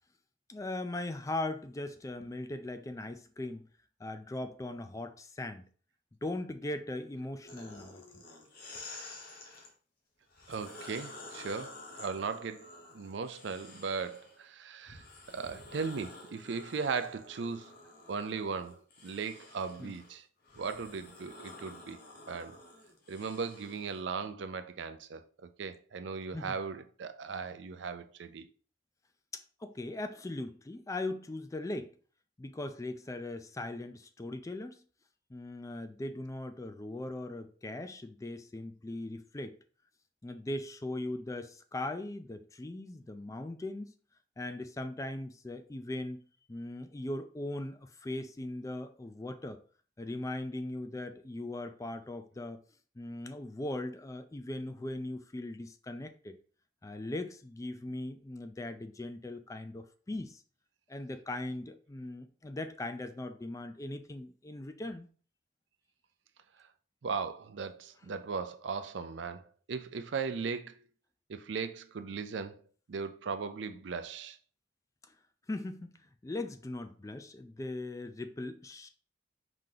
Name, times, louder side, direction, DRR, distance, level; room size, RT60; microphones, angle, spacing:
voice 1, 0.5-3.6 4.0-5.6 6.2-8.2 19.8-19.9 26.3-26.5 29.3-31.9 32.4-34.8 35.3-39.6 40.2-43.9 44.4-46.2 46.5-49.6 50.0-52.6 53.0-56.4 56.8-60.4 60.9-65.1 75.5-75.9 76.2-78.9, left 2 dB, 15° left, 0.4 m, -39 dB
sound 1, 7.4-9.7 10.3-14.4 14.9-24.0, left 2 dB, 50° left, 1.2 m, -50 dB
voice 2, 10.5-12.7 12.9-17.7 18.1-20.3 20.6-22.0 22.3-22.6 23.1-28.5 66.6-66.7 67.0-70.7 71.3-72.6 72.9-74.4, right 5 dB, 70° right, 0.5 m, -38 dB
4.9 x 2.8 x 3.8 m
head